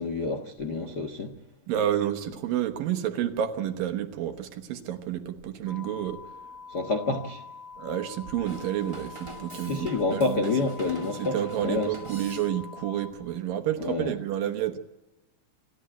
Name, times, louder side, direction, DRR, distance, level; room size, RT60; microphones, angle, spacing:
voice 1, 0.0-1.3 6.7-7.4 9.6-11.4 11.6-11.9 13.8-14.1, left 3 dB, 85° left, 0.9 m, -28 dB
voice 2, 1.7-6.2 7.8-10.5 11.2-14.8, right 11 dB, 70° right, 2.8 m, -30 dB
sound 1, 5.7-13.1, left 5 dB, 60° left, 6.3 m, -45 dB
Drum kit / Drum, 8.5-12.8, right 2 dB, 15° right, 1.1 m, -44 dB
27.0 x 13.0 x 9.0 m
omnidirectional pair, 4.3 m